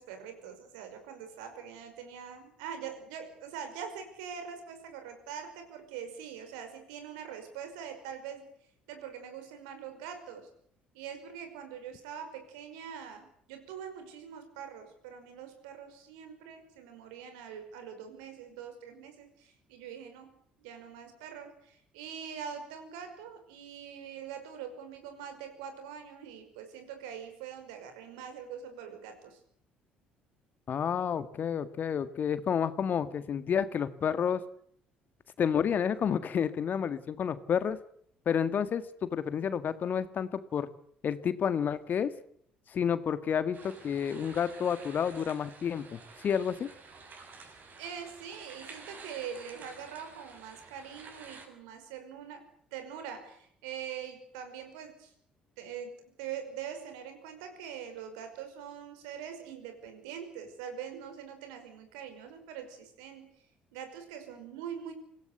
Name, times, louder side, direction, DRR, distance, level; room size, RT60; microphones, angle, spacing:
voice 1, 0.0-8.5 8.9-10.5 10.9-29.4 47.8-52.5 52.7-55.1 55.6-63.4 63.7-64.9, right 8 dB, 70° right, 8 dB, 5.3 m, -43 dB
voice 2, 30.7-34.4 35.4-37.8 38.3-40.7 41.0-42.1 42.7-46.7, left 7 dB, 45° left, 13 dB, 1.7 m, -30 dB
sound 1, 43.5-51.5, right 4 dB, 45° right, 7.0 m, -50 dB
25.5 x 17.0 x 8.2 m, 0.65 s
figure-of-eight pair, 50°, 4 cm